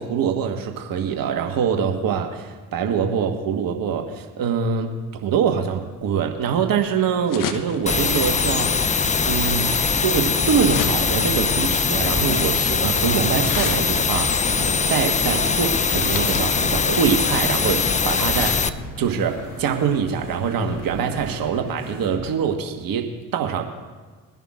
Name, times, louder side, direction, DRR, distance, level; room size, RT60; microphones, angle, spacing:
voice 1, 0.0-9.0 9.2-18.6 19.0-23.6, right 7 dB, 60° right, 4 dB, 1.4 m, -24 dB
sound 1, 5.7-20.5, left 7 dB, 55° left, 1.1 m, -36 dB
sound 2, 7.9-18.7, left 5 dB, 20° left, 0.5 m, -21 dB
sound 3, 8.2-22.3, left 1 dB, 75° left, 4.4 m, -37 dB
22.0 x 11.0 x 2.5 m, 1.4 s
hypercardioid pair, 50°, 40 cm